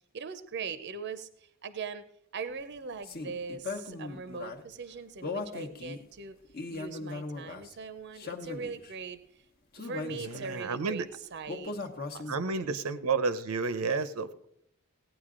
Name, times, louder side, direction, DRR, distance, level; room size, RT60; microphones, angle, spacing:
voice 1, 0.1-2.0 2.3-6.4 6.7-9.4 9.8-12.8, right 5 dB, 50° right, 12 dB, 0.6 m, -41 dB
sound 1, 3.0-4.6 5.2-6.0 6.5-7.7 8.2-8.9 9.7-10.6 11.5-12.5, left 3 dB, 45° left, 1.0 m, -38 dB
voice 2, 10.1-11.1 12.3-14.5, right 4 dB, 85° right, 13 dB, 0.7 m, -31 dB
16.5 x 9.2 x 3.7 m, 0.72 s
head